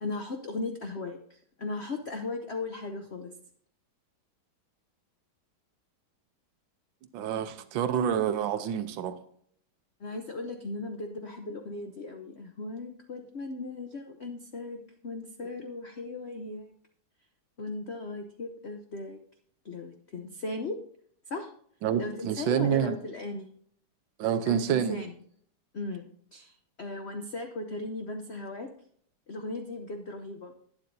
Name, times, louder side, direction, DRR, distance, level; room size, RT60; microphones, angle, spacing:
voice 1, 0.0-3.3 10.0-16.7 17.6-19.2 19.6-20.8 21.3-21.5 22.0-23.5 24.5-25.1 25.7-28.7 29.3-30.5, left 2 dB, 75° left, 0.6 m, -37 dB
voice 2, 7.1-9.2 21.8-23.0 24.2-25.0, right 8 dB, 70° right, 1.5 m, -28 dB
11.5 x 9.8 x 2.7 m
omnidirectional pair, 2.2 m